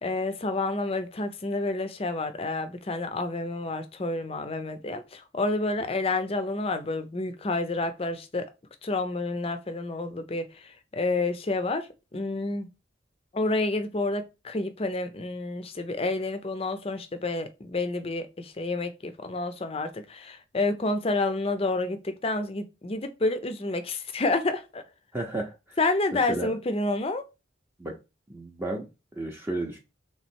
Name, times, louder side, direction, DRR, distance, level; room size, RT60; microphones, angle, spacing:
voice 1, 0.0-8.5 8.8-12.7 13.3-24.8 25.8-27.2, left 2 dB, 30° left, 0.6 m, -29 dB
voice 2, 25.1-25.8 26.1-26.5 27.8-27.9 28.3-28.9 29.2-29.8, right 2 dB, 10° right, 0.6 m, -33 dB
3.5 x 3.1 x 4.4 m
head